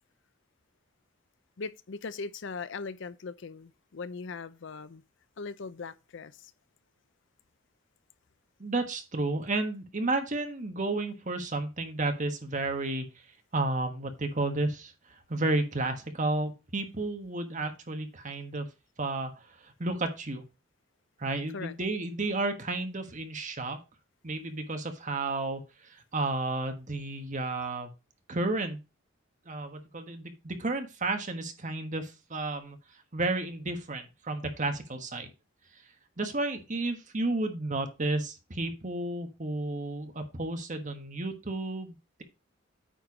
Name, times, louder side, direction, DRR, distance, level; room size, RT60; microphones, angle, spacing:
voice 1, 1.6-5.0 5.4-6.5 21.5-21.7, left 4 dB, 65° left, 0.6 m, -39 dB
voice 2, 8.6-13.1 13.5-14.9 15.3-18.7 19.0-19.3 19.6-20.4 21.2-23.8 24.2-27.9 28.3-28.8 29.5-32.8 33.1-35.3 36.2-42.2, right 2 dB, 40° right, 1.4 m, -32 dB
9.1 x 4.5 x 4.9 m
head